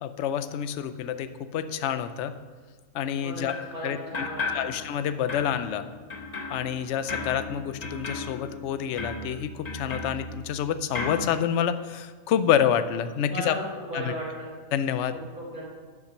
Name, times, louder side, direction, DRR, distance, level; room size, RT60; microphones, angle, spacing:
voice 1, 0.0-2.3 2.9-3.5 3.8-5.8 6.5-13.5 13.9-14.1 14.7-15.1, left 9 dB, 65° left, 11 dB, 0.8 m, -28 dB
voice 2, 3.1-3.4 3.7-4.7 13.3-14.5 15.4-15.6, right 1 dB, 70° right, -6 dB, 3.4 m, -36 dB
sound 1, 3.5-3.8 4.1-5.0 5.3-10.6 10.9-11.3, left 3 dB, 30° left, 1.0 m, -35 dB
10.5 x 5.9 x 6.5 m, 1.5 s
omnidirectional pair, 1.6 m